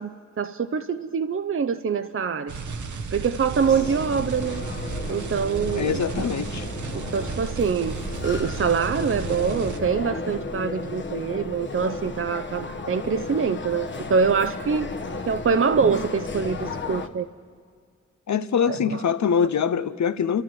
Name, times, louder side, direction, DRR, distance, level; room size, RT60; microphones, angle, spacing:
voice 1, 0.0-2.5 3.1-4.6 5.1-6.3 6.9-8.0 8.2-14.9 15.3-17.3 18.6-19.0, right 6 dB, 45° right, 0.6 m, -25 dB
sound 1, 2.5-9.8, right 4 dB, 85° right, 1.1 m, -34 dB
sound 2, 3.6-17.1, left 3 dB, 40° left, 1.1 m, -34 dB
voice 2, 5.8-6.7 18.3-20.4, left 7 dB, 75° left, 0.7 m, -24 dB
30.0 x 12.5 x 7.6 m
cardioid pair, 60°, 29 cm